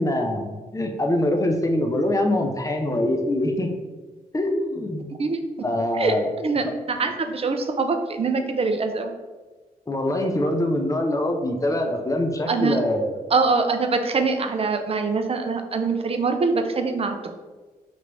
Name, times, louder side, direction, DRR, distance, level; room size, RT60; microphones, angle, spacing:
voice 1, 0.0-3.7 4.3-5.1 5.6-6.3 9.9-13.2, left 1 dB, 20° left, 3 dB, 0.6 m, -24 dB
voice 2, 6.0-9.1 12.5-12.8 13.3-17.3, right 4 dB, 35° right, 6 dB, 0.5 m, -24 dB
3.3 x 2.4 x 3.3 m, 1.3 s
hypercardioid pair, 45°, 17 cm